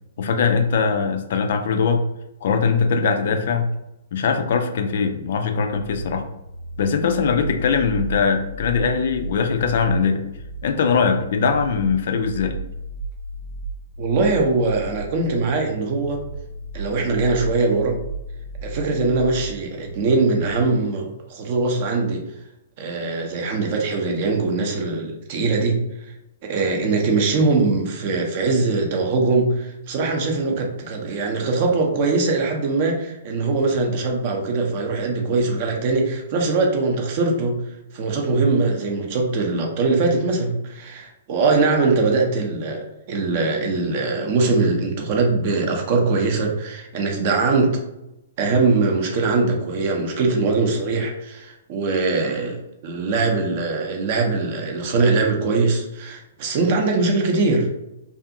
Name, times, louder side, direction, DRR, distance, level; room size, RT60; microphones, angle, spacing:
voice 1, 0.2-2.0 2.4-3.7 4.1-6.2 6.8-10.2 10.6-12.6, left 5 dB, 50° left, 6 dB, 0.3 m, -21 dB
sound 1, 5.6-20.6, right 1 dB, 90° left, 0.6 m, -35 dB
voice 2, 14.0-16.2 16.7-18.0 18.6-22.2 22.8-25.8 26.4-37.6 37.9-47.7 48.4-57.7, right 3 dB, 40° right, 2 dB, 0.6 m, -21 dB
2.5 x 2.5 x 2.6 m, 0.90 s
figure-of-eight pair, 115°, 0 cm